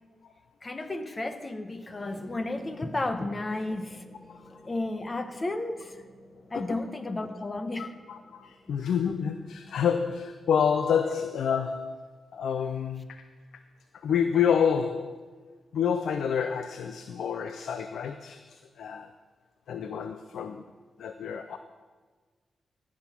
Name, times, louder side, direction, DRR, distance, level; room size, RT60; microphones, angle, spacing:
voice 1, 0.6-4.0 4.6-6.0 6.5-7.9, left 2 dB, 35° left, 8 dB, 1.2 m, -32 dB
sound 1, 1.9-10.3, left 1 dB, 10° left, 3.8 m, -55 dB
voice 2, 4.3-4.6 6.5-6.8 7.8-13.3 13.9-19.2 19.7-20.6 21.0-21.6, left 7 dB, 75° left, 9 dB, 0.4 m, -29 dB
15.5 x 6.2 x 5.8 m, 1.4 s
supercardioid pair, 45°, 0 cm